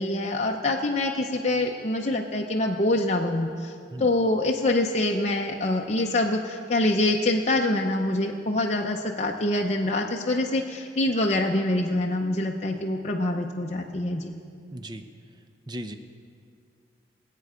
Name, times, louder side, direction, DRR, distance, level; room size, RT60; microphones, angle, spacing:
voice 1, 0.0-14.3, left 2 dB, 35° left, 0 dB, 0.7 m, -25 dB
voice 2, 14.7-15.0 15.7-16.0, right 1 dB, 20° right, 8 dB, 0.7 m, -36 dB
24.0 x 8.4 x 5.0 m, 2.4 s
head